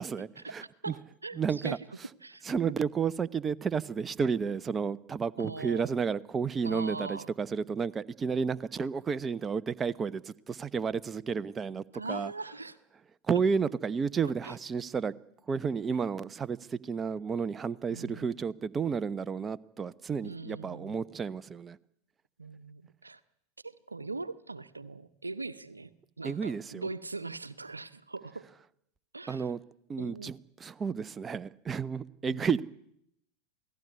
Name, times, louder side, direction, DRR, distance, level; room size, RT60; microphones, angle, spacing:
voice 1, 0.0-0.9 1.4-1.8 2.4-12.3 13.3-15.1 15.5-21.8 26.2-26.9 29.3-29.6 29.9-32.6, right 6 dB, 20° right, 1.0 m, -32 dB
voice 2, 0.8-1.8 2.2-2.4 4.4-4.5 5.4-5.9 6.6-7.3 11.9-12.8 14.4-14.5 17.9-18.4 20.2-21.0 22.4-23.2 23.6-25.9 26.2-28.5 29.1-29.5 30.0-30.3 32.3-32.6, right 3 dB, 85° right, 1.0 m, -41 dB
28.0 x 18.0 x 9.6 m
figure-of-eight pair, 85°, 0 cm